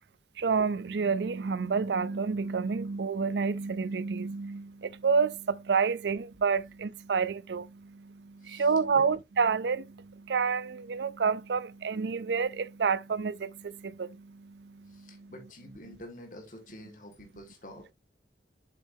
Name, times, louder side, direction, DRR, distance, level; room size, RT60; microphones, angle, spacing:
voice 1, 0.4-15.3, right 5 dB, 75° right, 0.5 m, -29 dB
voice 2, 14.9-17.9, left 1 dB, 45° left, 2.0 m, -48 dB
7.5 x 7.1 x 2.7 m
head